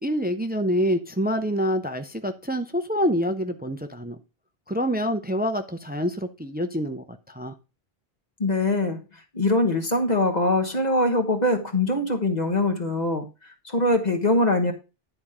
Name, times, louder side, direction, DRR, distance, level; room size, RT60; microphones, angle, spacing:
voice 1, 0.0-4.2 4.7-7.5, equal, 10° right, 8 dB, 0.6 m, -26 dB
voice 2, 8.4-9.0 9.3-13.3 13.6-14.7, left 2 dB, 45° left, 4 dB, 1.3 m, -22 dB
10.5 x 4.3 x 4.9 m, 0.29 s
omnidirectional pair, 1.0 m